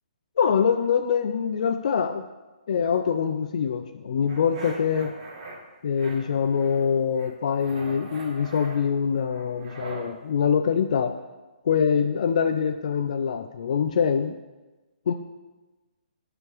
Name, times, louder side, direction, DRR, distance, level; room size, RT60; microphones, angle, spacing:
voice 1, 0.4-2.2 2.7-5.1 5.8-11.1 11.6-14.3 15.1-15.2, left 7 dB, 55° left, 7 dB, 0.4 m, -24 dB
sound 1, 4.3-5.6 6.0-6.9 7.1-10.1, right 1 dB, 50° right, 2.3 m, -42 dB
13.5 x 5.0 x 3.1 m, 1.2 s
hypercardioid pair, 160°, 4 cm